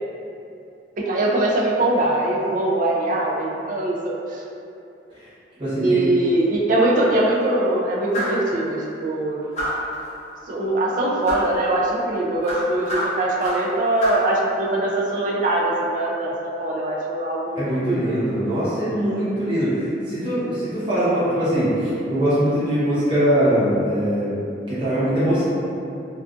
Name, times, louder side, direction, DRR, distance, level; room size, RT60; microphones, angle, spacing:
voice 1, 1.0-4.4 5.8-9.5 10.5-18.2, right 1 dB, 45° right, -3 dB, 0.3 m, -22 dB
voice 2, 5.6-6.0 17.5-19.7 20.1-24.3 24.7-25.4, equal, 30° right, -13 dB, 0.9 m, -21 dB
sound 1, 8.1-8.5 9.5-9.9 11.2-11.5 12.4-13.7 14.0-14.3, equal, 40° left, 0.6 m, -27 dB
2.4 x 2.3 x 2.4 m, 2.7 s
head